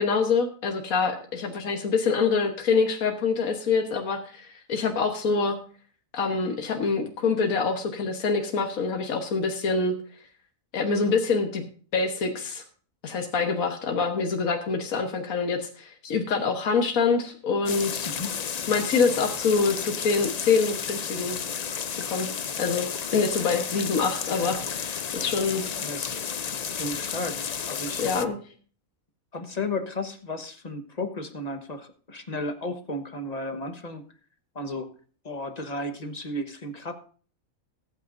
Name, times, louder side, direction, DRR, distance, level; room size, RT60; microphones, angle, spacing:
voice 1, 0.0-5.6 6.1-9.9 10.7-11.6 11.9-12.6 13.0-18.1 18.7-21.4 22.0-22.3 22.6-25.6 28.0-28.4, left 4 dB, 80° left, 3 dB, 1.7 m, -25 dB
sound 1, 17.7-28.3, left 7 dB, 60° left, 0.4 m, -32 dB
voice 2, 18.0-18.3 25.8-26.2 26.6-28.0 29.3-34.0 34.5-34.9 35.2-36.9, left 2 dB, 30° left, 7 dB, 1.2 m, -34 dB
19.5 x 9.2 x 2.6 m, 0.43 s
omnidirectional pair, 1.4 m